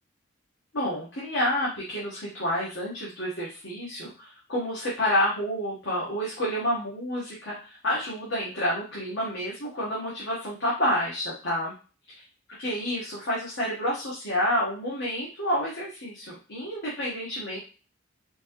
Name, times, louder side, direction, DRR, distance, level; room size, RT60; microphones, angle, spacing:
voice 1, 0.7-11.7 12.2-12.3 12.6-17.6, equal, 60° left, -6 dB, 1.2 m, -29 dB
4.4 x 2.7 x 3.0 m, 0.35 s
head